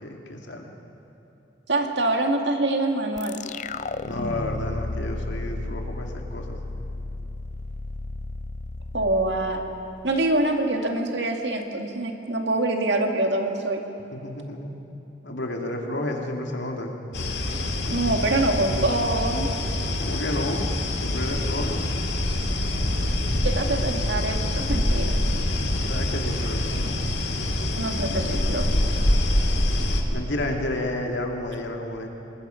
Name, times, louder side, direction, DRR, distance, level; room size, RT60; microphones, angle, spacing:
voice 1, 0.0-0.7 4.0-6.6 14.1-14.7 15.2-17.0 20.0-20.7 21.0-21.8 25.9-27.0 30.1-32.1, left 1 dB, 90° left, 2 dB, 2.4 m, -31 dB
voice 2, 1.7-3.4 8.9-9.6 10.0-13.8 17.5-19.5 23.4-25.2 27.8-28.7, right 2 dB, 70° right, 3 dB, 2.1 m, -25 dB
sound 1, 3.2-10.4, left 2 dB, 40° left, 0.6 m, -33 dB
sound 2, 17.1-30.0, left 1 dB, 65° left, 2.3 m, -25 dB
28.5 x 20.0 x 5.8 m, 2.9 s
head